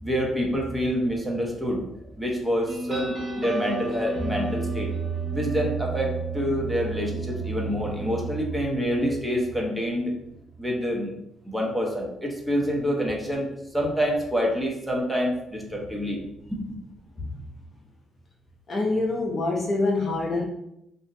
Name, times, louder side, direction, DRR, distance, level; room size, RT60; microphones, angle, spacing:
voice 1, 0.0-1.8 2.2-4.9 5.3-10.1 10.6-11.1 11.4-16.2 16.5-16.8, equal, 5° right, -2 dB, 0.8 m, -27 dB
sound 1, 2.7-9.8, right 4 dB, 40° right, 1.2 m, -32 dB
voice 2, 18.7-20.4, left 2 dB, 40° left, -1 dB, 0.6 m, -25 dB
2.6 x 2.1 x 3.7 m, 0.79 s
cardioid pair, 90°, 0 cm